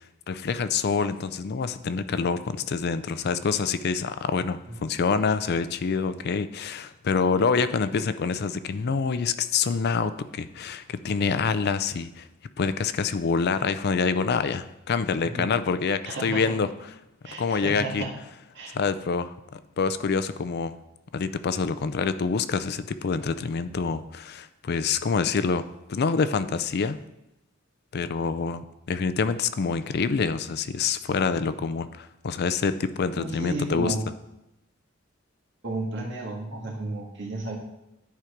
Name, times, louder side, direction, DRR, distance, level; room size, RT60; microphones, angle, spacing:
voice 1, 0.3-12.3 12.6-16.7 17.4-18.0 18.7-20.8 21.1-27.0 27.9-33.9, left 5 dB, 55° left, 13 dB, 0.4 m, -26 dB
voice 2, 16.0-16.6 17.2-18.2 18.5-18.8 33.2-34.1 35.6-37.6, right 2 dB, 60° right, -2 dB, 1.9 m, -33 dB
10.5 x 4.6 x 5.0 m, 0.90 s
head